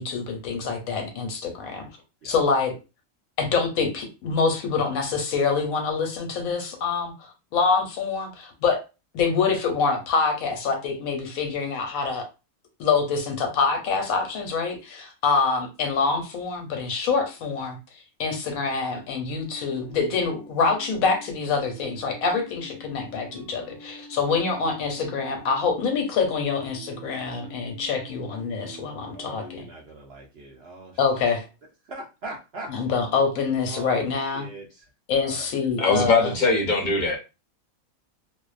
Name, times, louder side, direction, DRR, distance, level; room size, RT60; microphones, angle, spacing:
voice 1, 0.0-1.8 2.2-2.8 3.4-8.8 9.1-12.3 12.8-29.6 31.0-31.4 32.7-34.4 35.1-36.3, left 5 dB, 85° left, 1.1 m, -25 dB
sound 1, 19.2-29.6, equal, 25° right, 0.7 m, -45 dB
voice 2, 29.0-31.3 31.8-32.7 33.7-34.9 35.2-35.5, right 2 dB, 60° right, 0.7 m, -40 dB
voice 3, 35.8-37.2, left 3 dB, 45° left, 0.6 m, -21 dB
2.5 x 2.0 x 2.4 m
omnidirectional pair, 1.5 m